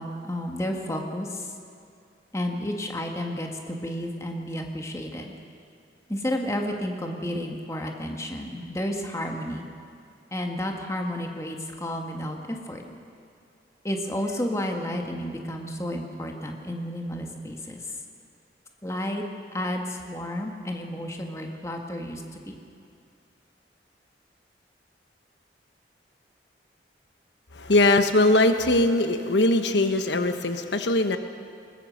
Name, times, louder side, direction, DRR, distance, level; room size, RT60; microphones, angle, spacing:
voice 1, 0.0-1.5 2.3-5.3 6.1-9.7 10.3-12.8 13.8-17.8 18.8-19.2 19.5-22.5, left 1 dB, 15° left, 2 dB, 1.8 m, -31 dB
voice 2, 27.5-31.2, left 2 dB, 80° left, 8 dB, 1.1 m, -21 dB
21.5 x 21.0 x 6.6 m, 2.4 s
head